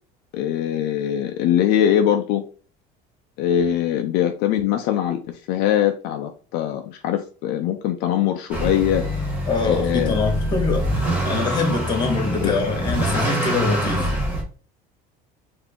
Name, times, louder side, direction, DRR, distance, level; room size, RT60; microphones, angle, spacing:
voice 1, 0.3-2.4 3.4-9.0 9.6-10.1 12.4-12.5, left 10 dB, 65° left, 0.5 m, -22 dB
Motor vehicle (road) / Accelerating revving vroom, 8.5-14.4, right 1 dB, 10° right, 1.6 m, -25 dB
voice 2, 9.5-14.1, left 4 dB, 25° left, 1.4 m, -24 dB
4.7 x 2.8 x 3.6 m
cardioid pair, 155°, 18 cm